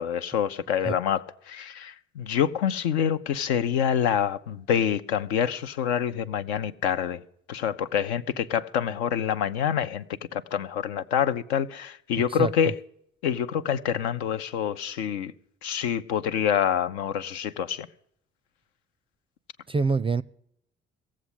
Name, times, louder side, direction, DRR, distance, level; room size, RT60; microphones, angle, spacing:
voice 1, 0.0-7.2 7.5-10.0 10.3-12.8 13.2-15.3 15.6-17.9, left 8 dB, 75° left, 0.7 m, -26 dB
voice 2, 12.3-12.7 19.7-20.2, right 4 dB, 15° right, 0.4 m, -26 dB
17.5 x 7.4 x 8.2 m
figure-of-eight pair, 50°, 33 cm